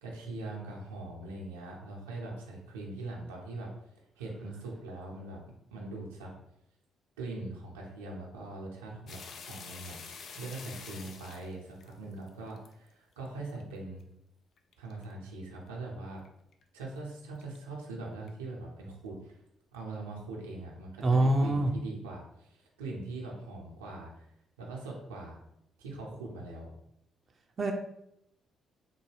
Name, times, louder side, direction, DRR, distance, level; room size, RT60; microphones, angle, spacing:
voice 1, 0.0-3.7 4.2-5.4 5.7-6.3 7.2-14.0 14.8-16.2 16.7-19.4 19.7-24.3 24.6-25.4 25.8-26.7, right 2 dB, 85° right, -2 dB, 0.6 m, -42 dB
sound 1, 9.1-12.7 13.3-13.6 14.0-14.1 14.6-15.1 15.7-15.8 16.2-16.3 16.5-16.8 17.4-17.6 18.3-18.4, left 5 dB, 60° left, 0.4 m, -47 dB
voice 2, 21.0-21.7 27.6-27.7, right 1 dB, 40° right, 3 dB, 0.5 m, -24 dB
3.7 x 2.2 x 3.3 m, 0.76 s
hypercardioid pair, 45°, 0 cm